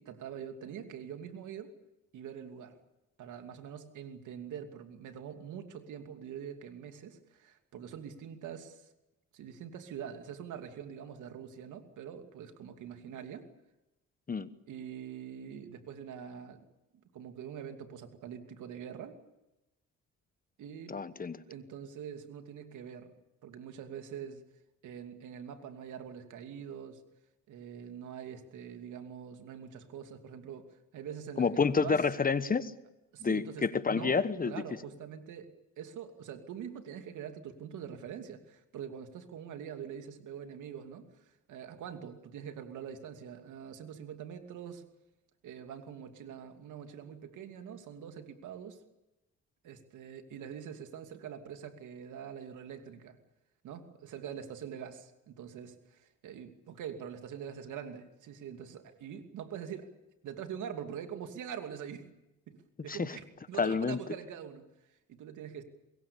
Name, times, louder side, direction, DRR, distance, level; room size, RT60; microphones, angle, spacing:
voice 1, 0.0-1.7 2.1-2.8 3.2-8.9 9.3-13.5 14.7-16.6 17.1-19.2 20.6-21.0 21.5-23.1 23.4-24.4 24.8-27.0 27.5-30.7 30.9-32.0 33.1-35.5 35.8-44.8 45.4-48.8 49.6-53.2 53.6-59.9 60.2-62.1 62.5-64.7 65.1-65.6, right 8 dB, 80° right, 7 dB, 2.8 m, -44 dB
voice 2, 20.9-21.4 31.4-32.7 33.2-34.5 62.9-63.1 63.6-64.0, left 5 dB, 30° left, 14 dB, 1.2 m, -29 dB
25.0 x 21.5 x 7.1 m, 0.94 s
cardioid pair, 90°, 30 cm